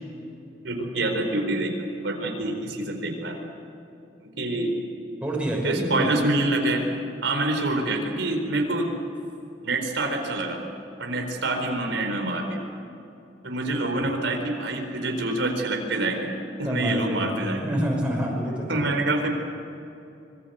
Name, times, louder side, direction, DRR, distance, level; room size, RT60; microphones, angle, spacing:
voice 1, 0.6-1.7 2.0-3.4 4.2-4.8 5.6-6.8 7.2-8.8 9.6-10.6 11.0-12.6 13.4-16.3 16.6-17.6 18.7-19.3, right 2 dB, 90° right, 3 dB, 4.4 m, -26 dB
voice 2, 5.2-6.1 13.8-13.9 16.6-18.8, equal, 5° right, -2 dB, 6.1 m, -27 dB
25.5 x 22.5 x 8.1 m, 2.7 s
head